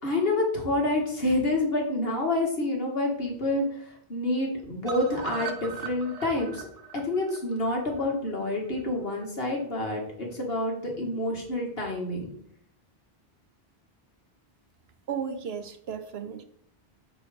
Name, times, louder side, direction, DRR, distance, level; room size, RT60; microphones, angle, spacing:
voice 1, 0.0-3.6 4.1-6.7 7.0-12.3, left 2 dB, 65° left, 0 dB, 2.1 m, -28 dB
sound 1, 4.9-8.9 9.2-9.3 9.6-9.7 10.0-10.1, right 4 dB, 40° right, 0.8 m, -40 dB
voice 2, 15.1-16.4, right 7 dB, 70° right, 8 dB, 1.0 m, -34 dB
6.1 x 4.6 x 6.5 m, 0.65 s
omnidirectional pair, 1.1 m